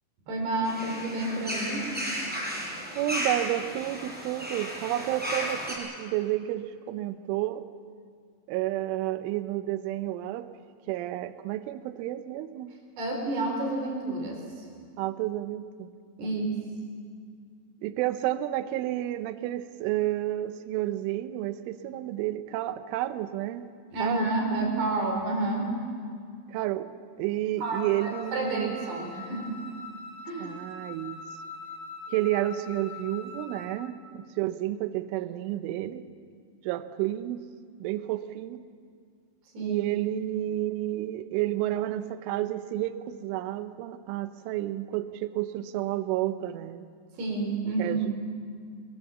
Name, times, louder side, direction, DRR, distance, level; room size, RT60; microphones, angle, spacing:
voice 1, 0.3-1.9 13.0-14.6 16.2-16.6 23.9-25.8 27.6-29.6 30.3-30.5 39.5-39.8 47.2-48.0, right 2 dB, 60° right, 1 dB, 6.3 m, -30 dB
sound 1, 0.6-5.7, equal, ahead, 5.6 m, -34 dB
voice 2, 3.0-7.6 8.5-10.5 10.9-12.7 15.0-15.9 17.8-23.6 24.0-24.7 26.5-26.9 27.2-28.8 30.4-31.2 32.1-36.0 36.6-37.4 37.8-38.6 39.6-46.8 47.8-48.2, right 14 dB, 85° right, 11 dB, 3.3 m, -31 dB
Wind instrument woodwind instrument, 27.6-33.8, left 2 dB, 55° left, 3.2 m, -43 dB
26.5 x 22.0 x 7.3 m, 2.1 s
omnidirectional pair, 5.5 m